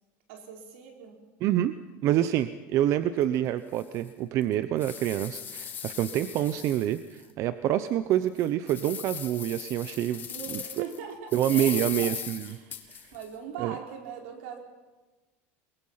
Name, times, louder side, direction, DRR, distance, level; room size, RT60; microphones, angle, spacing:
voice 1, 0.3-1.2 10.2-12.1 12.4-14.6, right 8 dB, 85° right, 2 dB, 4.5 m, -40 dB
voice 2, 1.4-1.7 2.0-10.6 11.3-12.6 12.9-13.1 13.6-13.7, right 12 dB, 50° right, 12 dB, 0.8 m, -27 dB
sound 1, 3.2-3.3 3.8-3.9 4.4-7.2 7.7-7.8 8.3-11.0 11.3-13.2, left 8 dB, 30° left, 1.9 m, -38 dB
23.0 x 22.5 x 5.8 m, 1.2 s
supercardioid pair, 140°, 7 cm